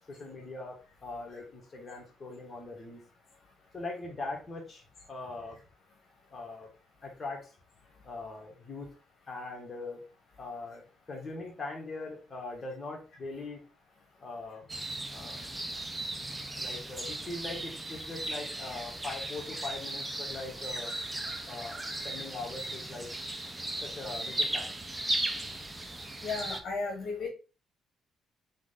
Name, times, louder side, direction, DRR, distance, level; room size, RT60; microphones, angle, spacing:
voice 1, 0.1-3.0 3.7-5.6 6.3-6.7 7.0-7.5 8.0-8.9 9.3-10.0 10.4-10.8 11.1-13.6 14.2-14.7 15.1-15.4 16.6-20.9 21.5-23.1 23.8-24.7, left 3 dB, 30° left, 0 dB, 1.7 m, -41 dB
sound 1, 14.7-26.6, right 1 dB, 15° right, 0.7 m, -36 dB
voice 2, 26.2-27.3, left 4 dB, 60° left, 1 dB, 1.2 m, -34 dB
3.8 x 3.3 x 3.8 m, 0.34 s
cardioid pair, 90°, 0 cm